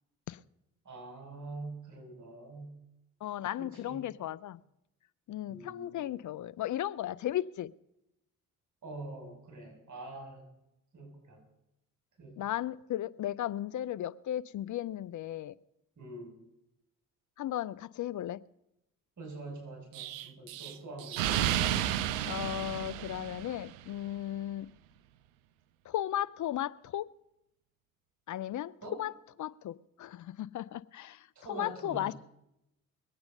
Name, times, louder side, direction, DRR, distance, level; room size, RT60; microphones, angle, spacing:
voice 1, 0.9-2.8 3.6-4.1 5.5-6.2 8.8-10.5 10.9-11.4 12.2-12.4 16.0-16.3 19.2-21.4 28.8-29.0 31.4-32.2, right 2 dB, 45° right, 6.9 m, -45 dB
voice 2, 3.2-4.6 5.3-7.7 12.4-15.5 17.4-18.4 22.3-24.7 25.9-27.1 28.3-29.1 29.4-32.1, left 12 dB, 45° left, 0.6 m, -35 dB
Explosion, 19.9-23.8, right 11 dB, 80° right, 0.7 m, -32 dB
22.0 x 8.8 x 5.4 m
hypercardioid pair, 50°, 41 cm